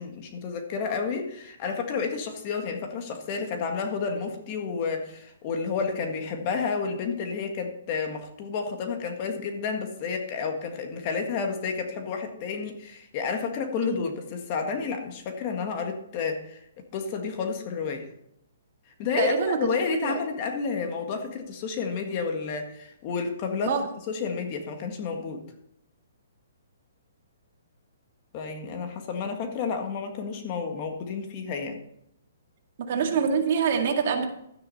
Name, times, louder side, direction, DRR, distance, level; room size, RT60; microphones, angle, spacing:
voice 1, 0.0-16.6 16.9-18.1 19.0-23.7 24.1-25.4 28.3-31.8, left 5 dB, 30° left, 4 dB, 1.7 m, -30 dB
voice 2, 19.2-19.6 20.0-20.2 23.6-23.8 32.8-34.3, right 6 dB, 45° right, 4 dB, 2.0 m, -25 dB
12.0 x 9.9 x 4.2 m, 0.75 s
hypercardioid pair, 165°, 0 cm